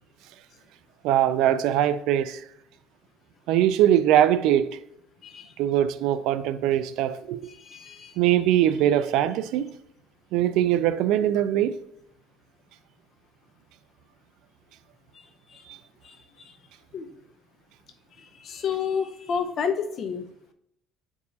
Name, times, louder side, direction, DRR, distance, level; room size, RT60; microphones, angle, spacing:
voice 1, 1.0-2.4 3.5-4.8 5.6-7.4 8.2-9.7 10.3-11.7 15.7-15.8, right 11 dB, 80° right, 0.4 m, -22 dB
voice 2, 7.7-8.1 16.9-17.1 18.4-20.2, left 6 dB, 40° left, 0.7 m, -29 dB
9.5 x 4.6 x 2.8 m
cardioid pair, 150°, 0 cm